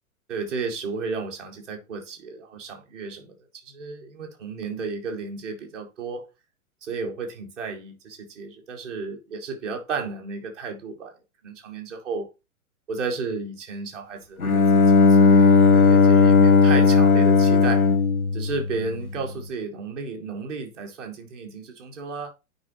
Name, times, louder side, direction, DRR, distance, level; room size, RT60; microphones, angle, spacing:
voice 1, 0.3-3.4 3.6-6.3 6.8-11.2 11.4-12.3 12.9-17.9 18.3-22.3, right 4 dB, ahead, 0.3 m, -33 dB
Bowed string instrument, 14.4-19.2, left 4 dB, 85° left, 0.8 m, -16 dB
9.5 x 4.8 x 2.9 m
figure-of-eight pair, 105°, 43 cm